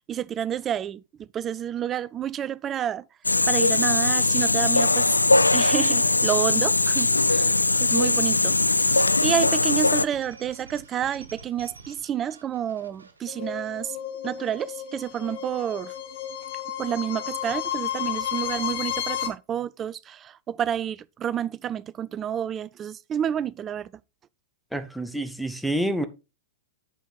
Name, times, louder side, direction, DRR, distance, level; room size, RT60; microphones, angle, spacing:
voice 1, 0.1-3.0 3.5-5.1 5.5-14.0 14.2-15.9 16.8-23.9, right 9 dB, 25° right, 0.4 m, -29 dB
sound 1, 3.2-10.0, left 2 dB, 85° left, 0.3 m, -21 dB
sound 2, 6.5-13.8, right 4 dB, 75° right, 1.4 m, -46 dB
sound 3, 13.3-19.3, left 10 dB, 50° left, 2.0 m, -32 dB
voice 2, 24.7-26.0, right 1 dB, ahead, 0.9 m, -28 dB
8.1 x 6.1 x 4.1 m
figure-of-eight pair, 105°, 0 cm